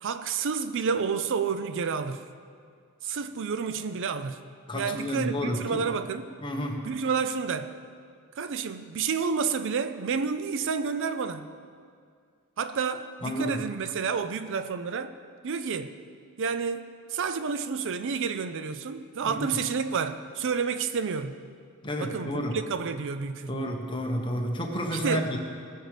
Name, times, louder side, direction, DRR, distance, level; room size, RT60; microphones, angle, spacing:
voice 1, 0.0-2.3 3.0-4.5 4.7-6.2 6.8-7.7 8.4-11.5 12.6-15.1 15.4-15.9 16.4-16.8 17.1-21.5 22.0-23.6 24.9-25.3, right 5 dB, 60° right, 11 dB, 0.5 m, -30 dB
voice 2, 4.7-5.8 6.4-6.9 13.2-13.6 19.2-19.6 21.8-22.6 23.5-25.4, equal, 25° left, 1 dB, 1.4 m, -31 dB
19.5 x 6.6 x 5.0 m, 2.2 s
head